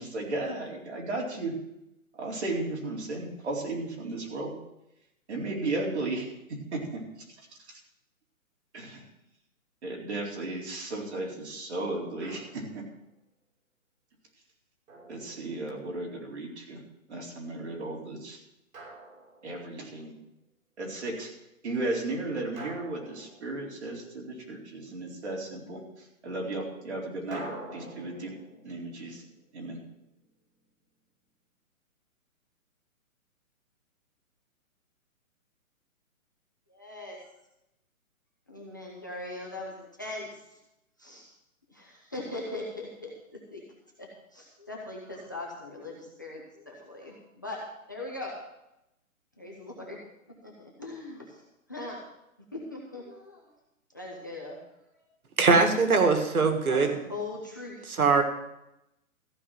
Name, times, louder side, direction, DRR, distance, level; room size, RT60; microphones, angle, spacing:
voice 1, 0.0-1.5 2.1-4.5 5.3-7.0 7.7-7.8 8.7-9.0 9.8-12.8 15.1-16.8 17.1-18.4 19.4-20.1 20.8-21.3 21.6-25.8 26.2-27.4 27.7-28.3 28.6-29.2 29.5-29.8, right 2 dB, 50° right, -2 dB, 4.1 m, -34 dB
Drum, 12.2-12.9 14.9-16.0 18.7-19.9 22.6-24.2 27.3-30.3, right 1 dB, 65° right, 5.5 m, -46 dB
voice 2, 36.7-37.2 38.5-40.6 41.0-41.3 41.7-43.6 44.0-48.4 49.4-50.0 50.4-51.4 51.7-52.0 52.5-53.5 53.9-54.6 54.9-55.1 56.7-57.9, left 2 dB, 15° left, -3 dB, 0.7 m, -40 dB
voice 3, 55.4-57.0 58.0-58.2, right 4 dB, 85° right, 5 dB, 2.2 m, -21 dB
14.5 x 5.5 x 9.2 m, 0.86 s
hypercardioid pair, 175°, 42 cm